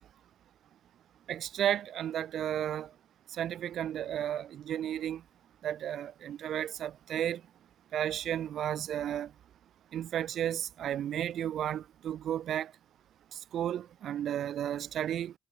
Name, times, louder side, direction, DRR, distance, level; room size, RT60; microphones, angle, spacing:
voice 1, 1.3-2.9 3.3-5.2 5.6-7.4 7.9-9.3 9.9-12.7 13.5-15.3, right 10 dB, 70° right, 1.0 m, -33 dB
cardioid pair, 90°, 0 cm